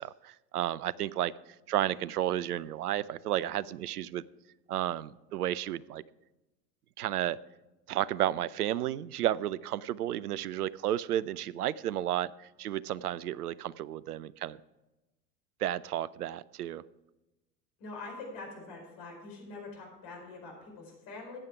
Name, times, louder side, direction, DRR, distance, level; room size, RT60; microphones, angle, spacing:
voice 1, 0.0-1.3 1.7-4.2 4.7-6.0 7.0-7.4 7.9-14.6 15.6-16.8, right 12 dB, 75° right, 21 dB, 0.5 m, -32 dB
voice 2, 17.8-21.4, left 3 dB, 50° left, 1 dB, 4.6 m, -44 dB
14.0 x 9.0 x 4.8 m, 1.0 s
figure-of-eight pair, 75°, 46 cm